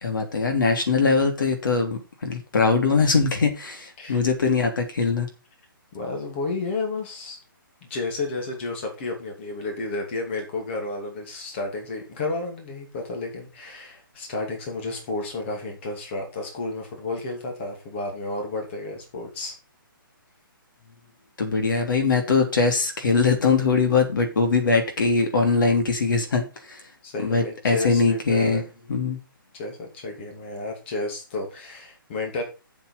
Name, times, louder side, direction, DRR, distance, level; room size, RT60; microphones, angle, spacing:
voice 1, 0.0-5.3 21.4-26.8 27.2-28.6 28.9-29.2, left 4 dB, 60° left, 4 dB, 3.2 m, -22 dB
voice 2, 5.9-7.4 7.9-19.5 27.0-28.7 29.5-32.4, left 2 dB, 30° left, 2 dB, 2.7 m, -31 dB
8.1 x 7.3 x 5.6 m, 0.31 s
hypercardioid pair, 165°, 12 cm